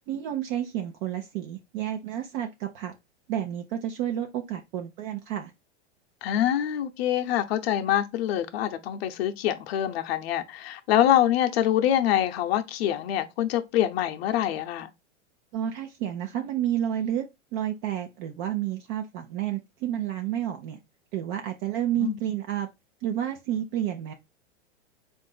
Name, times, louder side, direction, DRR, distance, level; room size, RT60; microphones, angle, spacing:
voice 1, 0.1-2.9 3.3-5.5 15.5-17.3 17.5-20.8 21.1-22.7 23.0-24.1, right 11 dB, 45° right, 0.6 m, -30 dB
voice 2, 6.2-14.9 22.0-22.2, left 11 dB, 60° left, 0.7 m, -25 dB
3.7 x 2.6 x 3.8 m
hypercardioid pair, 120°, 35 cm